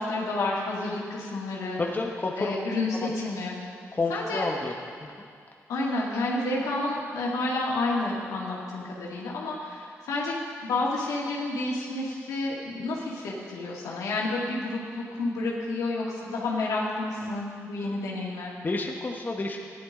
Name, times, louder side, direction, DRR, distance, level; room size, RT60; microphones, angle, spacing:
voice 1, 0.0-1.8 2.4-3.6 4.1-4.5 5.7-10.3 10.6-18.5, left 2 dB, 85° left, -4 dB, 2.3 m, -30 dB
voice 2, 1.8-2.5 3.0-3.1 3.9-4.7 5.0-5.1 18.6-19.6, left 3 dB, 35° left, 0 dB, 1.4 m, -29 dB
14.5 x 11.0 x 3.9 m, 2.2 s
cardioid pair, 55°, 6 cm